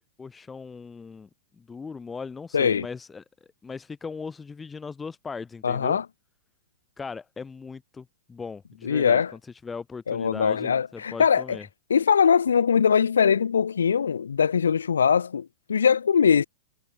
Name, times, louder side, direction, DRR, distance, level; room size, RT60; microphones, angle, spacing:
voice 1, 0.0-3.2 3.6-6.0 7.0-9.2 9.6-11.7, left 5 dB, 15° left, 5.9 m, -38 dB
voice 2, 2.5-2.9 5.6-6.0 8.8-9.3 10.1-11.6 11.9-16.5, left 7 dB, 75° left, 2.1 m, -21 dB
figure-of-eight pair, 105°, 0 cm